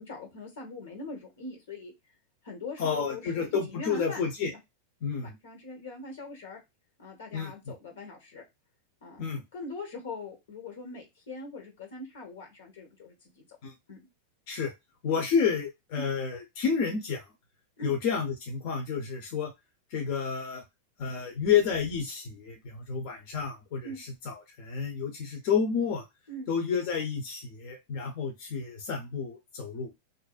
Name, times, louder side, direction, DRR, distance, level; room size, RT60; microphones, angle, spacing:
voice 1, 0.0-1.9 2.4-4.2 4.5-4.6 5.4-6.6 7.0-8.4 9.0-9.2 9.5-13.5 13.9-14.0 15.9-16.1 17.8-17.9 23.8-24.0 26.3-26.5, left 2 dB, 85° left, 2 dB, 1.2 m, -42 dB
voice 2, 2.8-4.5 5.0-5.3 7.3-7.5 9.2-9.4 13.6-13.7 14.5-14.7 15.0-17.3 17.8-19.5 19.9-20.6 21.0-26.0 26.5-29.9, left 6 dB, 55° left, 1 dB, 0.7 m, -30 dB
2.6 x 2.2 x 2.4 m, 0.20 s
supercardioid pair, 135°, 0 cm